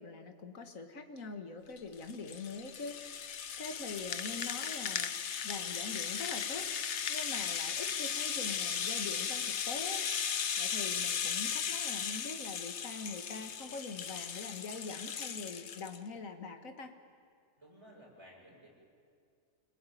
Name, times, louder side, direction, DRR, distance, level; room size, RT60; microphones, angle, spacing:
voice 1, 0.0-3.3 3.6-6.7 7.1-10.0 10.6-16.9, left 4 dB, 75° left, 6 dB, 2.1 m, -43 dB
Rattle (instrument), 1.8-16.0, left 7 dB, 60° left, 1.2 m, -36 dB
voice 2, 17.6-18.7, equal, 20° right, -3 dB, 7.5 m, -56 dB
28.0 x 21.0 x 9.3 m, 2.2 s
omnidirectional pair, 1.4 m